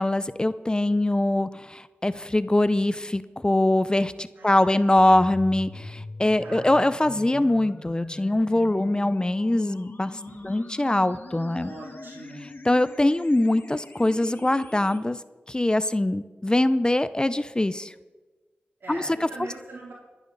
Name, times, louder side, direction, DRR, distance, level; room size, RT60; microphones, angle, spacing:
voice 1, 0.0-11.7 12.6-15.2 15.5-17.9 18.9-19.3, left 1 dB, 20° left, 15 dB, 0.6 m, -23 dB
voice 2, 4.4-5.2 6.4-6.7 10.2-10.7 11.6-12.5 18.8-19.9, right 2 dB, 80° right, -5 dB, 4.1 m, -43 dB
sound 1, 5.0-15.0, left 2 dB, 60° left, 1.9 m, -42 dB
24.0 x 11.0 x 4.0 m, 1.3 s
cardioid pair, 45°, 4 cm